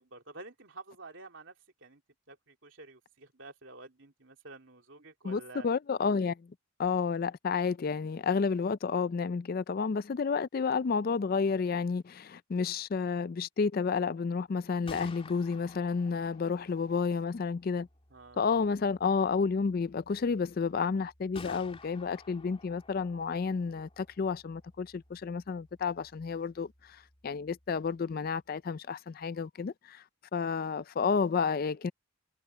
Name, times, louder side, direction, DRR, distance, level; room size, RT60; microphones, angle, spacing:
voice 1, 0.0-2.0 2.3-5.7 18.1-18.5, right 3 dB, 60° right, 3.3 m, -50 dB
voice 2, 5.2-6.5 6.8-17.9 18.4-30.0 30.3-31.9, left 5 dB, 40° left, 0.3 m, -31 dB
Gunshot gunfire, 14.6-28.4, left 3 dB, 25° left, 3.1 m, -54 dB
head